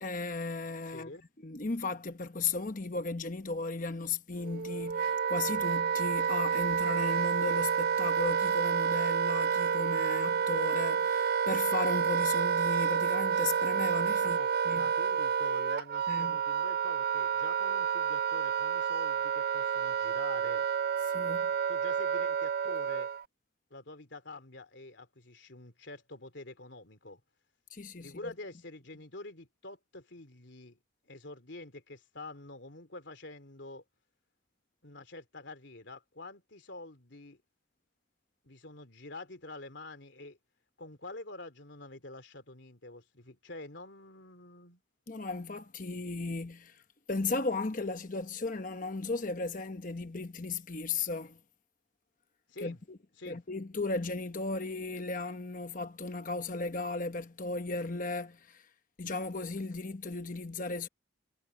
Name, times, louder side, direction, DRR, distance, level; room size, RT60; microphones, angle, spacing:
voice 1, 0.0-1.1 1.4-14.4 14.7-14.9 16.1-16.4 21.1-21.5 27.7-28.3 45.1-46.8 47.1-51.4 52.6-53.0 53.3-58.7 59.0-60.9, left 3 dB, 45° left, 1.0 m, -35 dB
voice 2, 0.9-1.2 14.2-20.7 21.7-23.1 23.7-27.2 28.0-30.8 31.0-33.8 34.8-37.4 38.4-40.4 40.8-44.8 52.5-52.8 53.2-53.4, left 2 dB, 65° left, 3.2 m, -47 dB
Wind instrument woodwind instrument, 4.4-23.2, right 7 dB, 50° right, 0.3 m, -29 dB
head